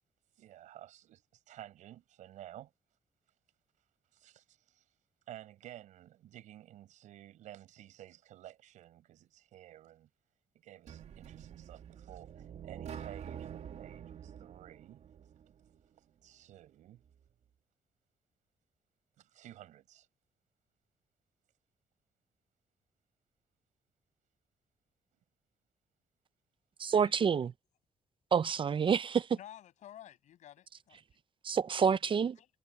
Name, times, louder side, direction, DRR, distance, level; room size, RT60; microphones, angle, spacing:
voice 1, 0.4-2.7 4.1-4.8 5.3-10.1 10.6-15.0 16.2-17.0 19.2-20.1, right 13 dB, 90° right, 6.0 m, -53 dB
sound 1, 10.9-15.8, right 8 dB, 65° right, 2.4 m, -47 dB
voice 2, 26.8-27.5 28.3-29.3 31.4-32.4, right 6 dB, 45° right, 0.5 m, -28 dB
voice 3, 29.3-31.0 32.4-32.5, left 11 dB, 80° left, 6.9 m, -52 dB
cardioid pair, 80°, 12 cm